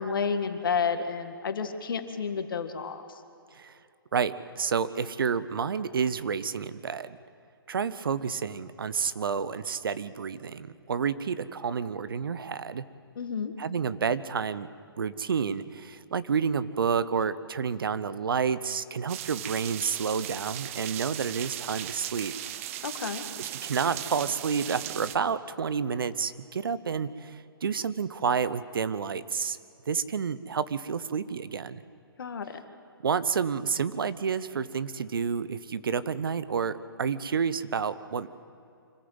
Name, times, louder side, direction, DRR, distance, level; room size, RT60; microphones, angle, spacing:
voice 1, 0.0-3.0 13.2-13.5 22.8-23.2 32.2-32.6, left 6 dB, 65° left, 7 dB, 1.9 m, -30 dB
voice 2, 4.1-7.2 7.7-12.8 13.6-14.7 15.0-22.3 23.4-29.6 29.9-31.8 33.0-38.3, right 6 dB, 65° right, 15 dB, 0.9 m, -30 dB
sound 1, 19.1-25.2, right 12 dB, 35° right, 0.9 m, -37 dB
25.5 x 14.5 x 7.9 m, 2.7 s
figure-of-eight pair, 135°, 12 cm